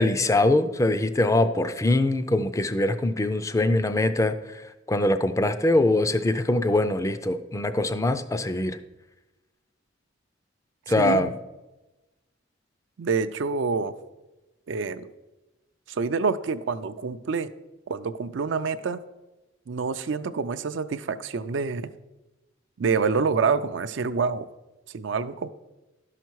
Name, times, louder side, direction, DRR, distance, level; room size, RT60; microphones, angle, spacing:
voice 1, 0.0-4.3 4.9-8.8 10.9-11.3, left 2 dB, 15° left, 11 dB, 0.4 m, -23 dB
voice 2, 11.0-11.3 13.0-13.9 14.7-15.1 15.9-17.5 17.9-19.0 19.7-21.9 22.8-24.5 24.9-25.5, right 5 dB, 65° right, 11 dB, 0.4 m, -27 dB
12.0 x 5.8 x 4.6 m, 1.1 s
head